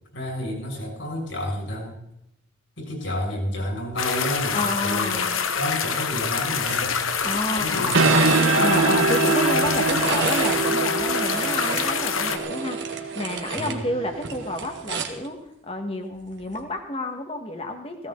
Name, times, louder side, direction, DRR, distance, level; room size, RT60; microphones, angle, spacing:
voice 1, 0.1-2.0 2.8-5.2 5.5-7.1 7.6-8.0 13.6-13.9, left 1 dB, 70° left, 0 dB, 6.6 m, -30 dB
sound 1, 4.0-12.4, left 6 dB, 90° left, 1.3 m, -26 dB
voice 2, 4.5-5.4 7.2-8.2 8.6-18.1, left 1 dB, 30° left, 4 dB, 1.9 m, -30 dB
sound 2, 6.6-6.8 7.1-8.8 9.5-10.6 11.0-13.8 14.1-15.3 16.4-16.6, right 4 dB, 60° right, 1.9 m, -31 dB
sound 3, 7.7-14.8, right 3 dB, 90° right, 1.3 m, -24 dB
17.5 x 16.5 x 4.0 m, 0.79 s
head